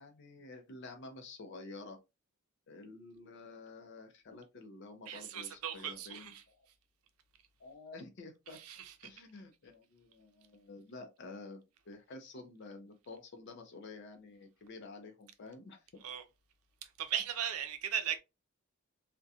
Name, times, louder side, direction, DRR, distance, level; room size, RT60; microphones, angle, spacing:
voice 1, 0.0-2.0 2.7-6.7 7.6-8.6 9.0-16.0, left 3 dB, 55° left, 0.5 m, -50 dB
voice 2, 5.1-6.4 8.5-9.1 16.0-16.2 16.8-18.2, right 9 dB, 90° right, 0.5 m, -38 dB
2.7 x 2.1 x 2.3 m
head